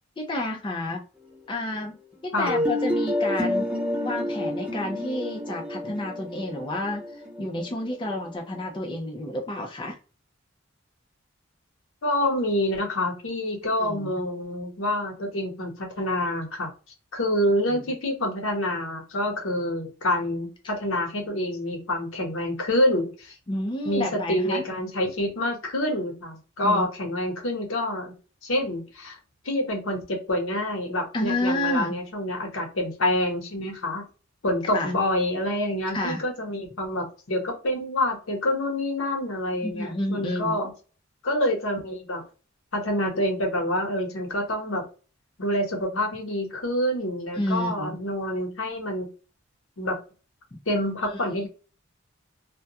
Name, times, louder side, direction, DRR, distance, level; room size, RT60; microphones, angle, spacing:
voice 1, 0.2-1.0 1.5-3.7 4.0-7.0 7.4-10.0 13.8-14.2 17.7-17.9 23.5-24.6 26.6-26.9 31.1-31.9 34.7-34.9 35.9-36.2 39.6-40.6 47.3-48.0 50.5-50.6 51.0-51.3, left 1 dB, 25° left, 1 dB, 0.4 m, -30 dB
voice 2, 2.3-2.6 12.0-16.7 17.1-23.3 23.8-28.1 28.4-29.2 29.4-34.1 34.4-40.7 41.2-42.2 42.7-44.8 45.4-49.1 49.8-50.0 50.7-51.5, left 1 dB, 90° left, 2 dB, 0.9 m, -27 dB
sound 1, 2.5-8.3, left 1 dB, 5° right, 0.7 m, -29 dB
2.3 x 2.1 x 2.7 m, 0.34 s
head